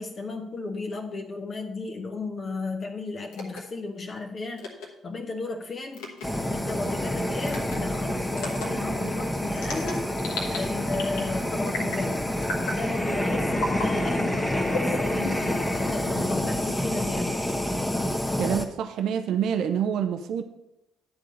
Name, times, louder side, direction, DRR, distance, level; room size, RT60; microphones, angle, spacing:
voice 1, 0.0-4.7 5.0-6.1 6.5-10.1 10.5-17.5, left 3 dB, 45° left, 3 dB, 1.0 m, -34 dB
sound 1, 3.3-3.6 4.6-4.9 5.9-6.3 7.4-7.8 8.3-8.7 9.6-10.6 10.9-11.3 11.7-12.1 12.4-12.8 13.5-13.9 14.7-15.6, left 2 dB, 70° left, 1.3 m, -33 dB
Fire, 6.2-18.6, left 1 dB, 15° left, 1.1 m, -28 dB
voice 2, 18.4-20.4, right 8 dB, 65° right, 8 dB, 0.6 m, -27 dB
10.5 x 3.8 x 6.3 m, 0.89 s
figure-of-eight pair, 45°, 0 cm